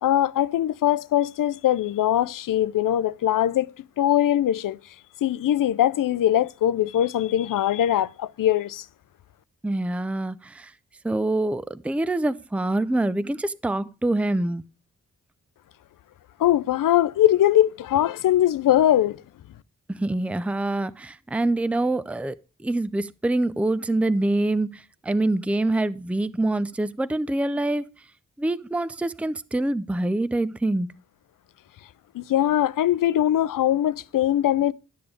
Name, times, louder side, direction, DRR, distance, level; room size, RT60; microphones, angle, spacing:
voice 1, 0.0-3.7 4.0-4.8 5.2-8.8 16.4-19.2 32.1-34.7, left 12 dB, 80° left, 0.5 m, -21 dB
voice 2, 9.6-10.7 11.0-14.6 19.9-22.3 22.6-27.9 28.4-30.9, right 2 dB, 5° right, 0.5 m, -25 dB
12.0 x 6.9 x 5.0 m
cardioid pair, 55°, 32 cm